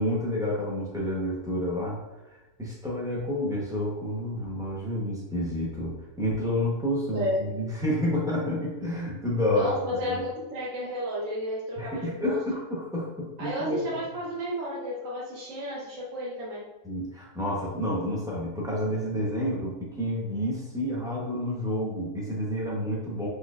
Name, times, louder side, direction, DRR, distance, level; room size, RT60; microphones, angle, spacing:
voice 1, 0.0-2.0 2.6-5.9 6.2-10.2 11.8-14.0 16.8-23.3, left 1 dB, 5° right, -5 dB, 0.7 m, -29 dB
voice 2, 9.5-12.4 13.4-16.7, equal, 80° right, -6 dB, 1.2 m, -32 dB
4.2 x 3.1 x 2.4 m, 1.0 s
omnidirectional pair, 1.4 m